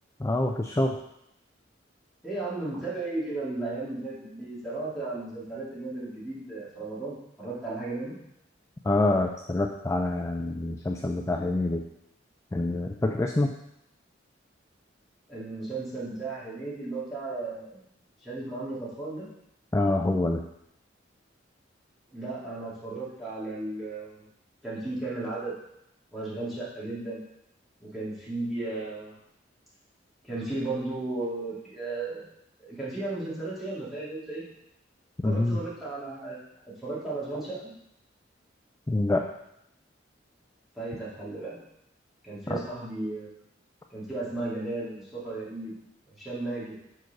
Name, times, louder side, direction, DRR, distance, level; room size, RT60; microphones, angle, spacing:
voice 1, 0.2-1.0 8.8-11.8 12.5-13.5 19.7-20.4 35.2-35.6 38.9-39.3 42.5-42.6, left 2 dB, 15° left, 2 dB, 0.3 m, -26 dB
voice 2, 2.2-8.2 15.3-17.8 18.2-19.3 22.1-24.2 24.6-25.5 26.1-27.2 27.8-29.2 30.2-32.3 32.7-34.4 35.2-36.4 36.6-37.7 40.8-41.6 42.2-43.3 43.9-45.7 46.1-46.7, right 2 dB, ahead, -10 dB, 2.3 m, -35 dB
4.7 x 4.6 x 5.9 m, 0.79 s
head